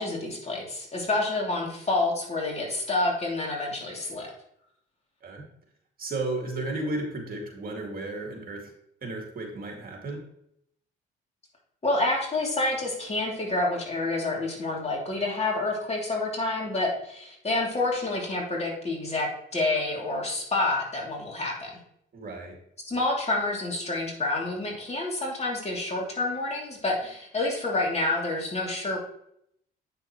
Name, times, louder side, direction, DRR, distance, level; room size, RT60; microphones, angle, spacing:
voice 1, 0.0-4.3 11.8-21.8 22.9-29.0, left 2 dB, 30° left, -1 dB, 2.9 m, -28 dB
voice 2, 6.0-8.7 9.0-10.2 22.1-22.6, right 2 dB, 45° right, 1 dB, 2.3 m, -33 dB
8.5 x 6.7 x 3.1 m, 0.72 s
cardioid pair, 90°, 20 cm